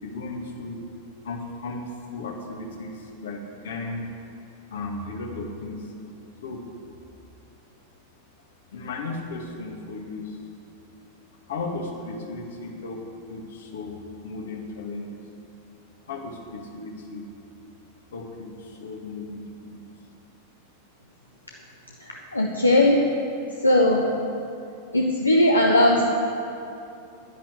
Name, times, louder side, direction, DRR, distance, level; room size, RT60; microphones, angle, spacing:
voice 1, 0.0-0.8 1.2-1.8 2.1-4.1 4.7-5.9 6.4-6.6 8.7-10.4 11.5-13.0 13.3-14.0 14.2-15.2 16.1-17.3 18.1-19.8, left 3 dB, 60° left, 2 dB, 2.0 m, -35 dB
voice 2, 22.0-23.0 23.6-24.1 24.9-26.1, left 1 dB, 80° left, 0 dB, 1.1 m, -19 dB
11.0 x 10.5 x 8.3 m, 2.7 s
figure-of-eight pair, 90°, 0 cm